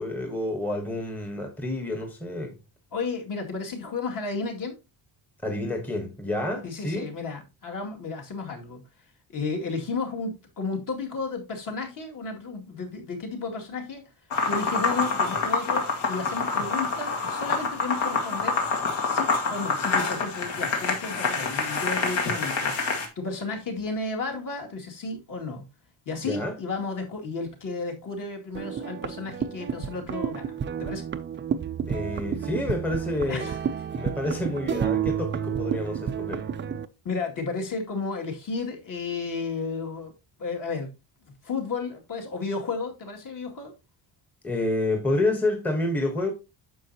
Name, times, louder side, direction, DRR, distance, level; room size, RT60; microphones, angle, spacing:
voice 1, 0.0-2.5 5.4-7.1 26.2-26.5 31.9-33.5 33.9-36.4 44.4-46.3, left 2 dB, 5° left, 1.0 m, -29 dB
voice 2, 2.9-4.8 6.6-8.8 9.3-14.0 14.5-18.6 19.0-25.7 26.1-31.0 33.3-33.6 37.0-40.1 40.4-40.9 41.4-43.7, left 4 dB, 45° left, 2.3 m, -33 dB
sound 1, 14.3-23.1, left 4 dB, 75° left, 2.1 m, -27 dB
sound 2, 28.5-36.9, right 8 dB, 25° right, 0.4 m, -30 dB
9.5 x 6.6 x 2.8 m
cardioid pair, 165°, 46 cm